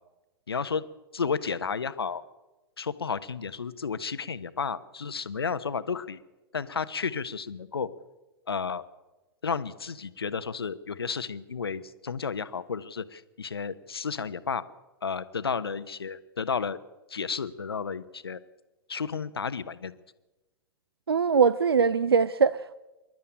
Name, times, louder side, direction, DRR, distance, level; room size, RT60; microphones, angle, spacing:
voice 1, 0.5-0.8 1.1-2.2 2.8-6.2 6.5-7.9 8.5-8.8 9.4-14.6 15.0-16.8 17.1-18.4 18.9-19.9, left 5 dB, 75° left, 1.1 m, -32 dB
voice 2, 21.1-22.8, right 6 dB, 80° right, 0.6 m, -22 dB
26.5 x 12.0 x 8.8 m
figure-of-eight pair, 100°, 13 cm